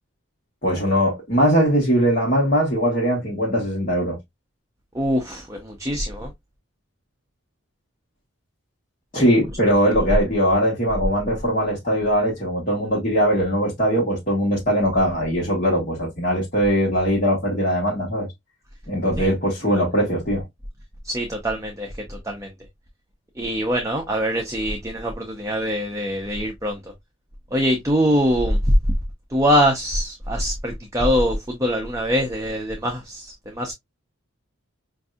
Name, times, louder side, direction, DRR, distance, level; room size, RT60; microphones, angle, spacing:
voice 1, 0.6-4.2 9.1-18.3 18.9-20.4, equal, 40° left, 1.2 m, -21 dB
voice 2, 4.9-6.3 9.6-9.7 19.2-19.3 21.0-22.5 23.4-26.8 27.5-28.7 29.3-33.7, equal, 15° right, 0.6 m, -23 dB
5.2 x 2.6 x 2.3 m
head